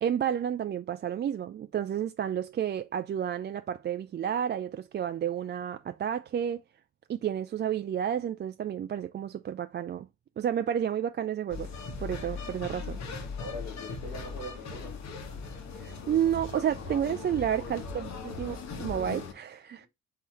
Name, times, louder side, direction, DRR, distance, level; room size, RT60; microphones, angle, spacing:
voice 1, 0.0-6.6 7.1-10.1 10.4-11.7 12.0-13.0 15.8-19.9, right 9 dB, 35° right, 0.4 m, -31 dB
sound 1, 11.5-19.3, left 4 dB, 55° left, 1.2 m, -39 dB
voice 2, 13.3-15.0, left 1 dB, 90° left, 1.7 m, -41 dB
4.2 x 3.8 x 3.1 m
hypercardioid pair, 45°, 33 cm